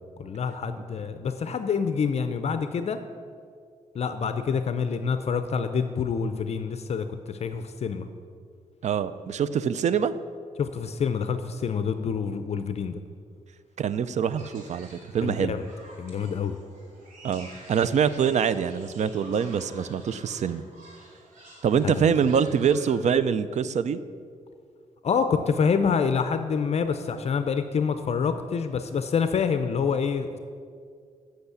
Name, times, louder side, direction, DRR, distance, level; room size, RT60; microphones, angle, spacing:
voice 1, 0.2-3.0 3.9-8.1 10.6-13.0 15.2-15.6 16.0-16.6 21.8-22.1 25.0-30.4, left 6 dB, 55° left, 9 dB, 0.5 m, -27 dB
voice 2, 8.8-10.1 13.8-14.9 15.1-15.6 17.2-20.6 21.6-24.0, right 7 dB, 60° right, 14 dB, 0.5 m, -24 dB
sound 1, 14.4-22.9, right 1 dB, 85° right, 2.6 m, -49 dB
8.0 x 6.4 x 8.3 m, 2.2 s
wide cardioid pair, 115°, 13 cm